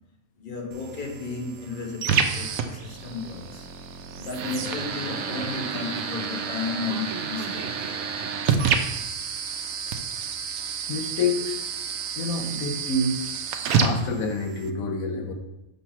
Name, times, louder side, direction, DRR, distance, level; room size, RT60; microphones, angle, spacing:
voice 1, 0.4-3.7 4.2-7.9, left 4 dB, 40° left, 1.1 m, -34 dB
sound 1, 0.7-14.7, right 6 dB, 80° right, 1.1 m, -29 dB
voice 2, 10.9-11.6 12.1-13.3 13.6-15.3, left 2 dB, 85° left, 1.3 m, -28 dB
6.0 x 3.9 x 5.6 m
omnidirectional pair, 1.4 m